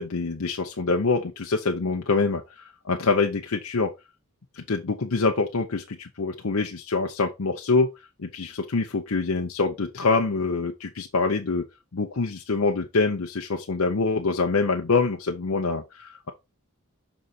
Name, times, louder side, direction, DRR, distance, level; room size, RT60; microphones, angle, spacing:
voice 1, 0.0-3.9 4.6-7.9 8.2-11.6 11.9-16.3, left 4 dB, 65° left, 0.7 m, -25 dB
6.4 x 4.0 x 4.0 m
head